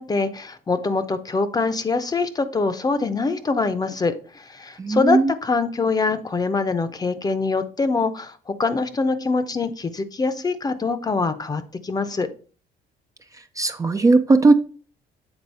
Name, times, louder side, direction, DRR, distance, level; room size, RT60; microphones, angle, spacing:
voice 1, 0.0-12.3, left 4 dB, 20° left, 12 dB, 0.8 m, -24 dB
voice 2, 4.8-5.3 13.6-14.5, right 3 dB, 20° right, 7 dB, 0.5 m, -17 dB
8.0 x 3.9 x 5.5 m, 0.40 s
cardioid pair, 110°, 17 cm